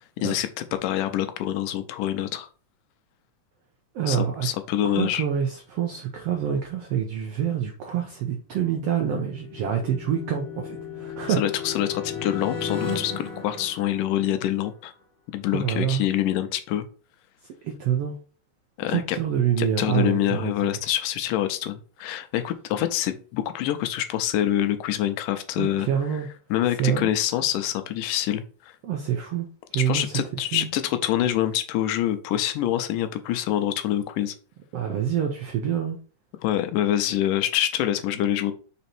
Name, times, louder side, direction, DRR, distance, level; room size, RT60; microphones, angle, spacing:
voice 1, 0.2-2.5 4.1-5.2 11.4-14.9 15.3-16.8 18.8-19.2 19.6-25.9 26.5-28.7 29.7-34.4 36.4-38.5, left 12 dB, 85° left, 2.2 m, -26 dB
voice 2, 3.9-4.5 4.8-11.4 15.5-16.1 17.6-18.1 18.9-20.8 25.6-26.3 26.8-27.1 28.8-29.5 29.7-30.1 30.5-30.7 34.7-36.0, right 9 dB, 80° right, 1.3 m, -26 dB
sound 1, 8.8-14.7, left 6 dB, 20° left, 1.1 m, -35 dB
5.2 x 4.1 x 4.3 m
omnidirectional pair, 3.8 m